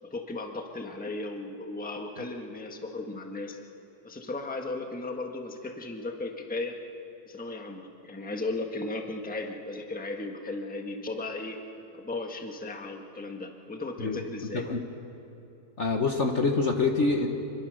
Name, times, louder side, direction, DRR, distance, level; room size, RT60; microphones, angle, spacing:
voice 1, 0.0-3.6 4.0-6.8 7.2-11.6 11.9-14.6, left 2 dB, 5° left, 3 dB, 1.2 m, -36 dB
voice 2, 15.8-17.3, left 3 dB, 45° left, 3 dB, 1.3 m, -25 dB
27.0 x 22.0 x 6.4 m, 3.0 s
omnidirectional pair, 2.0 m